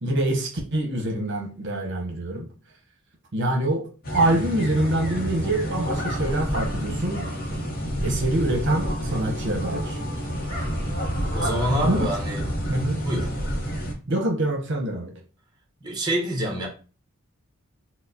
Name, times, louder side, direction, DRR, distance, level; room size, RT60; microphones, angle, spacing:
voice 1, 0.0-2.5 3.3-7.2 8.0-10.0 11.8-12.1 12.7-13.0 14.1-15.1, right 1 dB, 55° right, 0.8 m, -25 dB
sound 1, 4.0-13.9, equal, 45° left, 0.8 m, -28 dB
voice 2, 11.3-12.4 13.0-13.3 15.8-16.7, right 1 dB, 20° right, 0.9 m, -26 dB
4.5 x 2.0 x 2.6 m
head